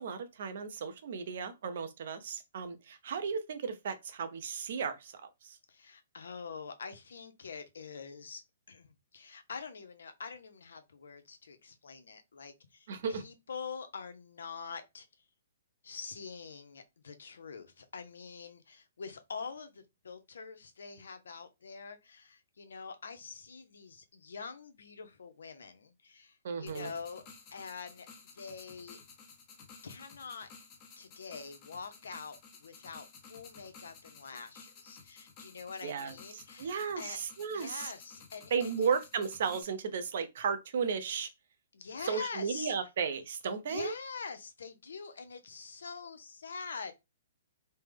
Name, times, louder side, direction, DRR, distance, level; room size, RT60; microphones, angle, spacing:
voice 1, 0.0-5.6 12.9-13.2 26.4-26.9 35.8-37.9 38.5-41.3 42.0-43.9, right 6 dB, 60° right, 0.6 m, -35 dB
voice 2, 5.7-8.4 8.7-15.1 15.8-27.2 27.5-28.1 28.3-29.0 29.8-30.5 31.0-37.2 37.5-38.9 41.7-42.7 43.7-46.9, left 5 dB, 85° left, 0.6 m, -45 dB
sound 1, 26.7-39.6, left 5 dB, 30° left, 0.7 m, -54 dB
3.2 x 2.0 x 3.3 m
hypercardioid pair, 155°, 0 cm